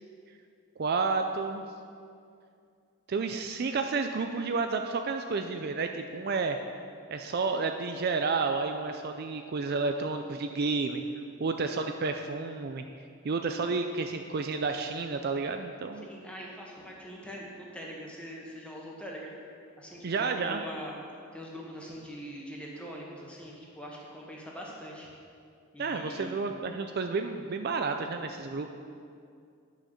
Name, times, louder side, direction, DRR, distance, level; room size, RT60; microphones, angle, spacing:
voice 1, 0.8-1.7 3.1-6.6 7.1-11.0 11.4-12.8 13.2-16.1 20.0-20.6 25.8-28.8, right 4 dB, 45° right, 6 dB, 0.4 m, -31 dB
voice 2, 16.0-19.3 19.8-20.9 21.3-25.1 25.7-26.5, equal, 5° left, -3 dB, 1.5 m, -43 dB
9.9 x 6.3 x 6.4 m, 2.4 s
head